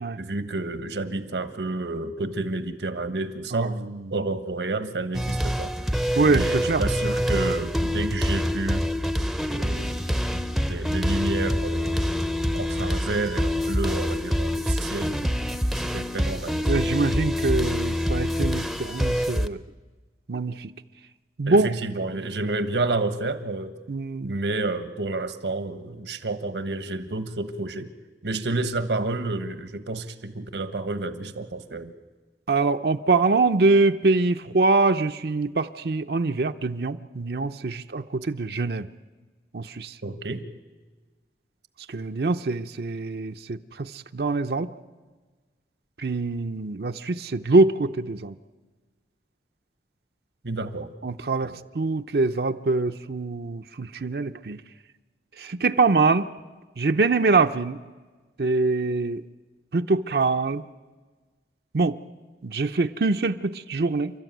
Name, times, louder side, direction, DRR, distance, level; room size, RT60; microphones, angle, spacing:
voice 1, 0.2-3.8 4.1-5.7 6.2-8.9 9.5-10.0 10.7-12.0 12.5-15.2 15.8-16.7 21.5-23.7 24.2-27.9 28.2-31.9 40.0-40.5 50.4-50.9 51.4-51.5, right 2 dB, 85° right, 10 dB, 1.3 m, -30 dB
voice 2, 3.5-4.0 6.2-6.8 16.7-19.6 20.3-20.7 21.4-21.7 23.9-24.3 32.5-38.9 39.5-39.9 41.9-44.7 46.0-48.3 51.0-54.6 55.4-56.3 56.8-57.8 58.4-59.2 59.7-60.6 61.7-62.0 62.4-64.1, right 3 dB, 65° right, 7 dB, 0.6 m, -24 dB
sound 1, 5.1-19.5, equal, ahead, 0.6 m, -26 dB
29.5 x 13.0 x 9.2 m, 1.3 s
head